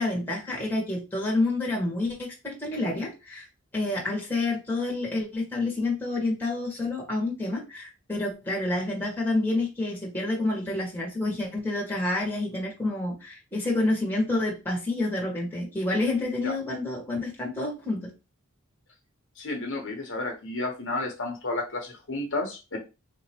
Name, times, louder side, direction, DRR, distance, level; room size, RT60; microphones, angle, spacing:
voice 1, 0.0-3.4 3.7-18.1, left 2 dB, 10° left, -2 dB, 1.5 m, -28 dB
voice 2, 19.4-22.8, left 2 dB, 60° left, 1 dB, 1.1 m, -31 dB
4.1 x 2.9 x 2.9 m, 0.28 s
head